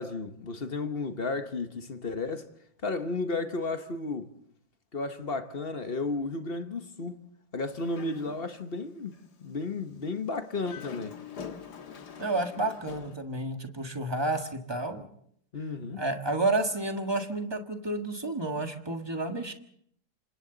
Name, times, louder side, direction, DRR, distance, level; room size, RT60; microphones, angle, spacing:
voice 1, 0.0-2.5 2.8-4.3 4.9-7.2 7.5-11.1 15.5-16.0, left 3 dB, 40° left, 1.1 m, -33 dB
Dog, 7.6-8.7 9.1-9.3 10.5-13.2, left 7 dB, 65° left, 2.0 m, -44 dB
voice 2, 12.2-15.1 16.0-19.5, right 2 dB, 15° right, 1.5 m, -30 dB
28.5 x 26.0 x 4.0 m
omnidirectional pair, 1.9 m